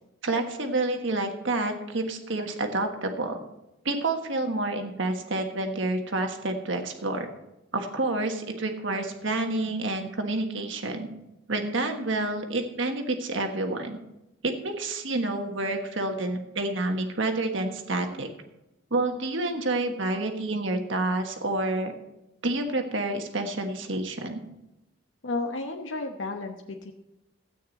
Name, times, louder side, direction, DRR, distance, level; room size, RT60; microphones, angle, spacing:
voice 1, 0.2-3.4 3.8-7.3 7.7-11.1 11.5-14.0 14.4-18.3 18.9-21.9 22.4-24.4, right 2 dB, 70° right, 4 dB, 1.4 m, -28 dB
voice 2, 25.2-26.9, left 2 dB, 70° left, 2 dB, 1.0 m, -32 dB
13.0 x 9.0 x 4.1 m, 0.89 s
head